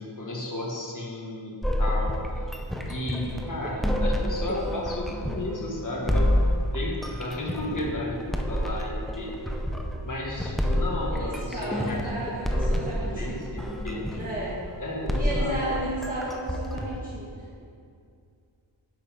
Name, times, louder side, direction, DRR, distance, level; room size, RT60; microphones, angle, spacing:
voice 1, 0.0-2.2 2.9-6.3 6.7-9.4 10.0-12.0 12.5-14.0 14.8-15.6 16.0-16.1, left 1 dB, 40° left, -3 dB, 1.9 m, -34 dB
sound 1, 1.6-17.0, equal, ahead, 0.6 m, -29 dB
voice 2, 3.0-3.5 11.1-13.5 14.1-14.6 15.1-17.6, right 1 dB, 15° right, -8 dB, 1.9 m, -34 dB
10.5 x 8.5 x 3.7 m, 2.3 s
wide cardioid pair, 125°, 49 cm